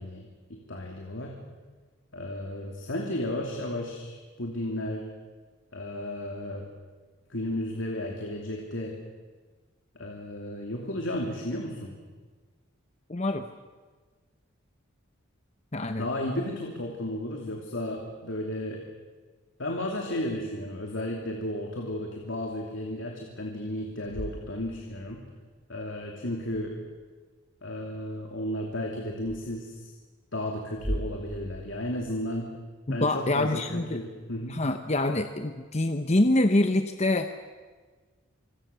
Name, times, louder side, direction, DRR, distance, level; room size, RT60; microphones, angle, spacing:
voice 1, 0.0-1.4 2.1-5.0 5.7-6.7 7.3-9.0 9.9-11.9 16.0-18.8 19.6-25.2 25.7-26.8 27.6-29.9 30.3-32.5 32.9-34.6, left 1 dB, 70° left, 1 dB, 2.8 m, -33 dB
voice 2, 13.1-13.5 15.7-16.1 32.9-34.0 34.5-37.3, left 1 dB, 35° left, 7 dB, 1.0 m, -25 dB
sound 1, 23.8-25.3 26.4-27.1 29.2-29.4 30.7-32.7, equal, 5° right, 2.4 m, -39 dB
26.5 x 24.5 x 6.9 m, 1.4 s
head